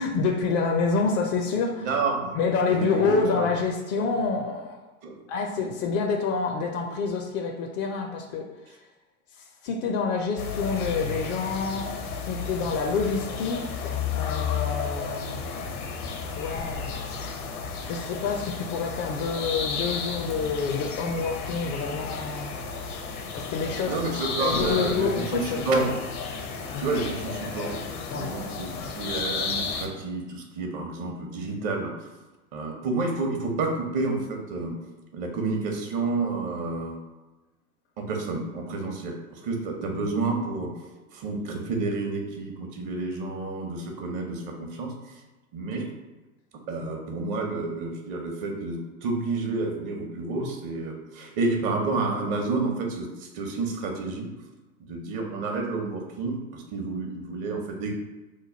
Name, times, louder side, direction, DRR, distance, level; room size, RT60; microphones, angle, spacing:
voice 1, 0.0-1.9 2.3-4.8 5.3-8.5 9.6-13.7 14.1-15.4 16.2-17.0 17.8-22.6 23.3-24.0 24.4-25.8 26.7-26.9 28.1-28.4 50.4-50.5, left 4 dB, 35° left, 2 dB, 0.4 m, -27 dB
voice 2, 1.8-2.4 2.7-3.5 5.0-5.2 23.9-26.0 26.8-27.7 28.1-31.9 32.5-34.8 35.1-37.0 38.0-40.7 41.1-44.9 45.5-45.9 46.7-54.3 54.8-57.9, right 3 dB, 45° right, 2 dB, 0.8 m, -29 dB
sound 1, 10.4-29.9, left 5 dB, 80° left, 0.8 m, -33 dB
3.1 x 2.2 x 4.2 m, 1.1 s
hypercardioid pair, 90°, 44 cm